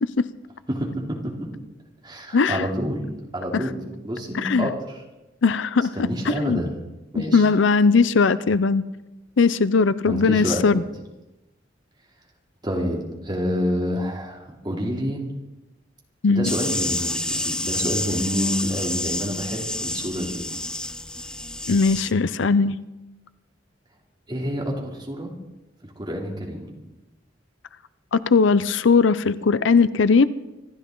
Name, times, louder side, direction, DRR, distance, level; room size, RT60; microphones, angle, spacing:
voice 1, 0.7-1.5 2.0-3.0 3.3-5.0 6.0-6.8 7.1-7.4 10.0-10.9 12.6-15.2 16.3-20.4 24.3-25.3 25.8-26.7, equal, 25° right, -1 dB, 3.0 m, -28 dB
voice 2, 2.3-2.6 4.3-4.7 5.4-6.6 7.2-8.8 9.4-10.8 16.2-16.5 21.7-22.8 28.1-30.3, left 4 dB, 75° left, 15 dB, 0.6 m, -19 dB
sound 1, 16.4-22.1, left 1 dB, 5° left, 0.4 m, -29 dB
26.0 x 12.0 x 3.9 m, 1.0 s
head